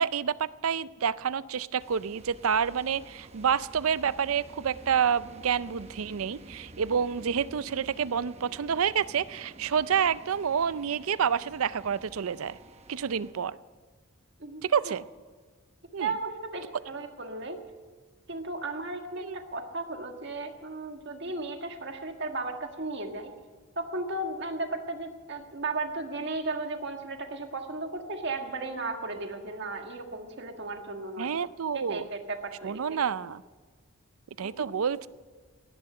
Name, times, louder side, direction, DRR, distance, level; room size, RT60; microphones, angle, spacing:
voice 1, 0.0-12.6 12.9-13.6 14.6-15.0 15.9-16.1 19.2-19.4 31.2-32.1 32.6-33.4 34.4-35.1, right 7 dB, 80° right, 17 dB, 0.5 m, -28 dB
sound 1, 1.8-13.3, right 1 dB, 30° right, 0.9 m, -50 dB
voice 2, 14.4-14.9 16.0-17.6 18.3-23.3 23.8-31.4 31.7-33.0 34.4-34.7, right 3 dB, 55° right, 4 dB, 1.7 m, -35 dB
17.5 x 11.0 x 6.7 m, 1.5 s
head